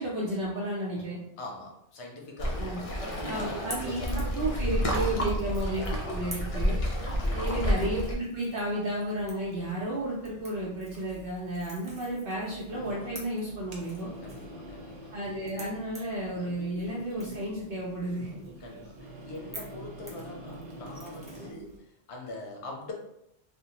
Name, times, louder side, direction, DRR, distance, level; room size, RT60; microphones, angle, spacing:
voice 1, 0.0-1.2 2.6-2.8 3.3-6.8 7.3-14.1 15.1-18.4, right 1 dB, 60° right, -4 dB, 0.8 m, -32 dB
voice 2, 1.4-4.7 5.2-5.6 6.2-6.5 7.2-7.7 14.2-15.1 18.6-22.9, left 2 dB, 85° left, 0 dB, 0.9 m, -43 dB
Waves surf, 2.4-8.1, equal, 45° left, 0.5 m, -30 dB
Crackle / Crack, 3.5-21.8, right 1 dB, 10° right, 0.4 m, -49 dB
sound 1, 12.7-21.5, right 1 dB, 85° right, 0.9 m, -46 dB
3.4 x 2.0 x 2.8 m, 0.78 s
omnidirectional pair, 1.1 m